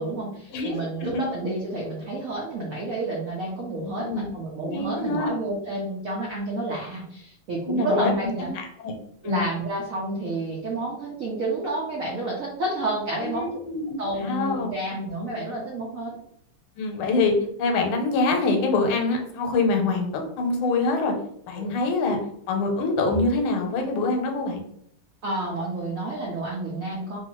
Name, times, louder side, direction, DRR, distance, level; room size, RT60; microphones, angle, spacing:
voice 1, 0.0-8.5 9.2-13.5 14.0-16.2 21.6-21.8 25.2-27.2, right 2 dB, 90° right, -3 dB, 0.7 m, -30 dB
voice 2, 0.5-0.8 1.1-1.2 3.8-4.3 4.6-5.3 7.7-8.1 8.4-8.9 9.2-9.4 13.2-14.7 16.8-20.1 20.4-21.1 21.5-22.2 22.5-24.6, left 3 dB, 80° left, 3 dB, 1.5 m, -25 dB
3.1 x 2.6 x 2.9 m, 0.70 s
omnidirectional pair, 2.3 m